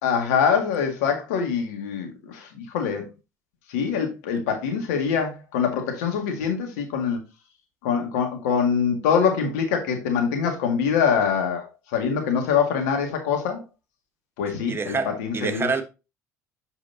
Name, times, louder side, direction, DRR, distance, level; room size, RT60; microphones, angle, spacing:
voice 1, 0.0-3.1 3.7-7.2 7.8-11.7 11.9-13.6 14.4-15.7, left 6 dB, 75° left, 2.0 m, -24 dB
voice 2, 14.7-15.8, right 4 dB, 25° right, 1.3 m, -27 dB
8.2 x 5.6 x 2.8 m
hypercardioid pair, 65°, 9 cm